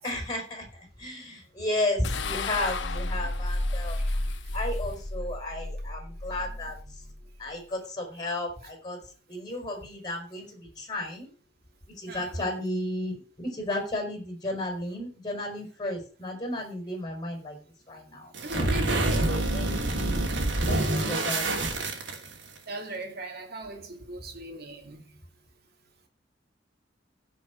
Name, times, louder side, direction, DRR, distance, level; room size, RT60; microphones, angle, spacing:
voice 1, 0.0-0.7 1.0-6.8 7.4-9.0 9.3-11.3 12.0-17.6 17.9-18.7 19.2-20.3 20.7-21.5, left 1 dB, 25° left, 5.2 m, -33 dB
sound 1, 2.0-7.4, left 2 dB, 80° left, 1.2 m, -32 dB
voice 2, 12.1-12.4 18.4-19.5 22.7-25.0, right 2 dB, 60° right, 2.5 m, -38 dB
sound 2, 18.3-22.6, right 2 dB, 80° right, 2.8 m, -27 dB
16.5 x 5.7 x 5.2 m
head